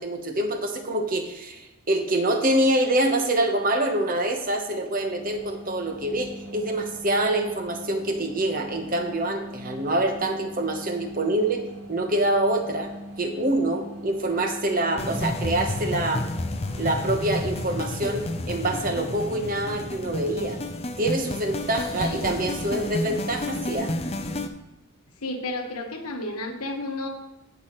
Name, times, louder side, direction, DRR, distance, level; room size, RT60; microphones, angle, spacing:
voice 1, 0.0-12.9 13.2-16.3 16.8-20.6 21.0-23.9, right 1 dB, 40° right, 5 dB, 1.1 m, -25 dB
sound 1, 4.9-18.5, equal, 70° right, 2.3 m, -41 dB
sound 2, 15.0-24.5, left 1 dB, 25° left, 0.5 m, -31 dB
voice 2, 22.0-22.4 25.2-27.1, left 2 dB, 90° left, 3 dB, 1.4 m, -32 dB
16.0 x 6.0 x 3.1 m, 0.96 s
head